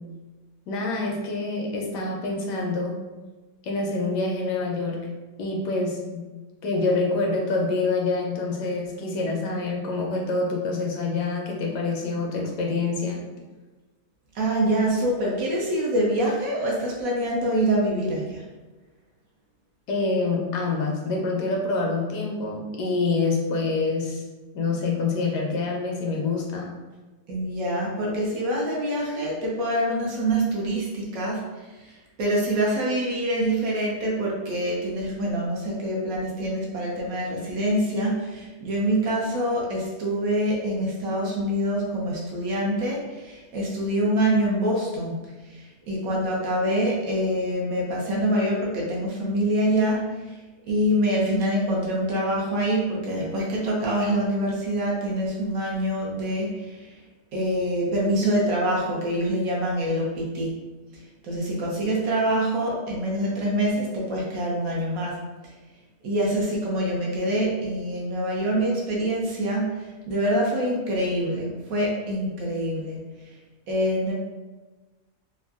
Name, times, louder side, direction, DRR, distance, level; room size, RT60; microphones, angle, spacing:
voice 1, 0.7-3.0 3.6-5.0 5.4-6.3 6.6-13.2 19.9-24.2 24.5-26.7, left 3 dB, 90° left, 0 dB, 1.2 m, -26 dB
voice 2, 14.3-18.4 27.3-45.1 45.5-50.4 50.7-56.9 57.3-60.6 61.2-65.2 66.0-73.0 73.7-74.1, right 1 dB, 65° right, -3 dB, 1.0 m, -25 dB
3.5 x 2.1 x 2.3 m, 1.2 s
omnidirectional pair, 1.7 m